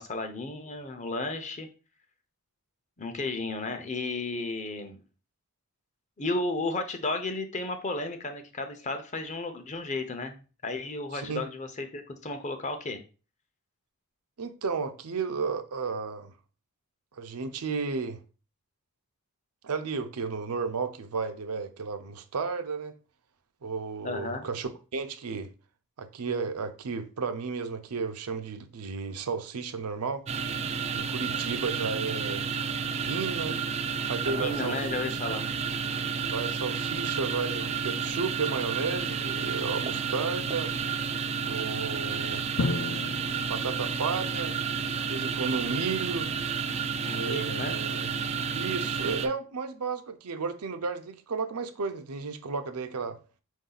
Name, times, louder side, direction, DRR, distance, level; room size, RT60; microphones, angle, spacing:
voice 1, 0.0-1.7 3.0-5.0 6.2-13.0 24.0-24.5 34.3-35.5 47.0-47.8, left 2 dB, 30° left, 0.6 m, -33 dB
voice 2, 11.1-11.4 14.4-16.3 17.2-18.2 19.6-22.9 23.6-25.5 26.0-30.2 30.9-32.5 33.0-33.6 34.1-35.4 36.3-40.7 41.4-42.5 43.5-44.6 45.1-46.3 47.1-48.1 48.5-53.2, right 4 dB, 85° right, 0.6 m, -33 dB
sound 1, 30.3-49.3, right 6 dB, 30° right, 0.3 m, -31 dB
Drum, 42.6-44.5, left 3 dB, 75° left, 0.5 m, -33 dB
4.8 x 2.7 x 3.9 m
head